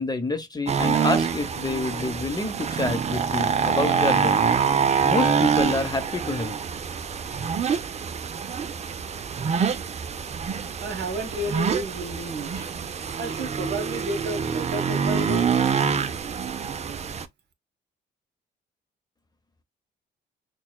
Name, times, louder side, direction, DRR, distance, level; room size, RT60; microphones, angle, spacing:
voice 1, 0.0-4.4 5.0-6.6, left 2 dB, 20° left, 0.8 m, -28 dB
sound 1, 0.7-17.3, right 6 dB, 35° right, 0.5 m, -25 dB
voice 2, 10.8-12.7 13.2-15.6, right 1 dB, 60° right, 1.1 m, -32 dB
6.1 x 2.2 x 2.2 m
cardioid pair, 90°, 20 cm